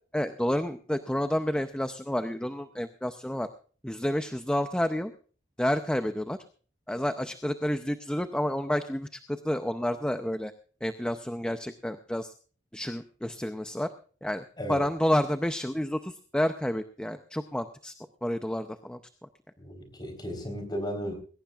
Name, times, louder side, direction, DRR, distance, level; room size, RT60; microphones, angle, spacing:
voice 1, 0.1-3.5 3.8-5.1 5.6-6.4 6.9-10.5 10.8-12.3 12.7-13.9 14.2-17.9 18.2-19.0, equal, 5° left, 8 dB, 0.6 m, -30 dB
voice 2, 19.6-21.1, equal, 25° left, 5 dB, 4.1 m, -35 dB
20.5 x 17.5 x 2.4 m, 0.41 s
head